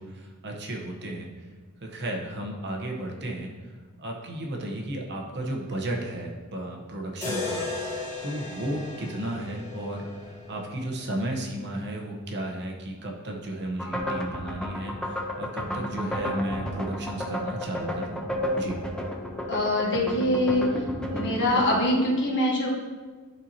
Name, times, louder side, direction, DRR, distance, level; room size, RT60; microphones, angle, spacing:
voice 1, 0.0-1.5 1.8-18.3 18.6-18.8, right 1 dB, 50° right, 1 dB, 1.0 m, -34 dB
sound 1, 7.2-11.3, left 3 dB, 30° left, 2.0 m, -36 dB
sound 2, 13.8-21.8, equal, 5° left, 0.5 m, -32 dB
voice 2, 19.5-20.6 21.1-22.7, left 1 dB, 55° left, -2 dB, 1.4 m, -24 dB
10.5 x 4.2 x 2.9 m, 1.4 s
head